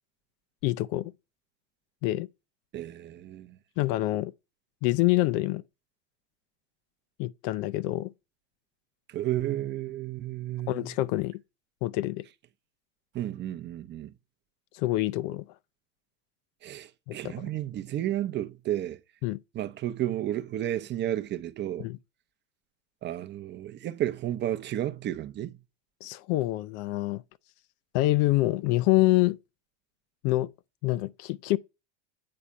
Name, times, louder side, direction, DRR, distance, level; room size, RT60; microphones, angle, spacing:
voice 1, 0.6-1.1 2.0-2.3 3.8-4.3 4.8-5.6 7.2-8.1 10.7-11.4 11.8-12.2 14.7-15.4 17.1-17.3 19.2-19.4 21.8-22.0 26.0-27.2 27.9-29.4 30.2-30.5 30.8-31.6, left 17 dB, 50° left, 0.5 m, -26 dB
voice 2, 2.7-3.6 9.1-10.9 13.1-14.1 16.6-19.0 19.5-21.9 23.0-25.6, right 12 dB, 30° right, 0.6 m, -32 dB
8.7 x 4.2 x 4.9 m
supercardioid pair, 120°, 37 cm